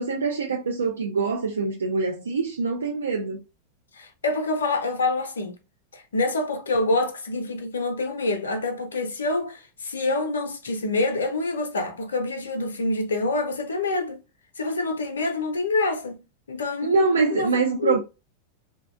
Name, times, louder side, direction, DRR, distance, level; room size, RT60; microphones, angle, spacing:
voice 1, 0.0-3.4 16.8-18.0, right 4 dB, 70° right, 0.3 m, -24 dB
voice 2, 3.9-5.6 5.9-14.2 14.6-16.2 16.5-17.0 17.3-17.5 17.8-18.0, left 2 dB, 70° left, 0.4 m, -26 dB
2.6 x 2.1 x 2.4 m
figure-of-eight pair, 90°, 0 cm